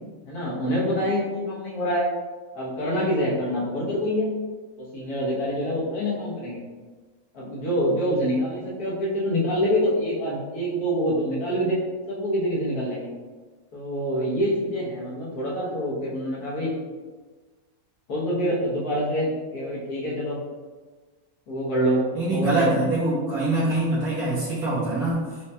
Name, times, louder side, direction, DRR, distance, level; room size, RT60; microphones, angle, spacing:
voice 1, 0.2-2.1 2.5-4.3 4.8-6.6 7.3-11.8 12.1-13.1 13.7-16.7 18.1-20.4 21.5-22.8, equal, 80° left, -6 dB, 1.4 m, -26 dB
voice 2, 22.1-25.3, right 2 dB, 80° right, -10 dB, 1.4 m, -24 dB
4.7 x 2.1 x 2.7 m, 1.4 s
omnidirectional pair, 1.6 m